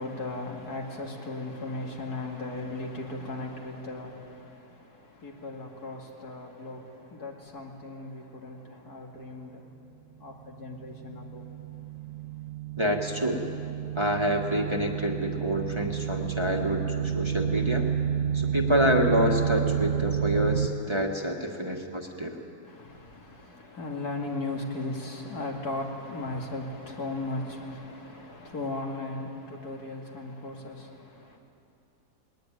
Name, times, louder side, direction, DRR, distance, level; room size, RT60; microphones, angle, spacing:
voice 1, 0.0-9.7 10.2-11.5 22.6-31.4, left 2 dB, 80° left, 2.9 m, -37 dB
sound 1, 11.0-20.7, right 9 dB, 55° right, 0.7 m, -30 dB
voice 2, 12.8-13.4 13.9-17.9 18.3-22.4, equal, 20° right, 1.4 m, -27 dB
20.5 x 19.5 x 9.2 m
omnidirectional pair, 1.6 m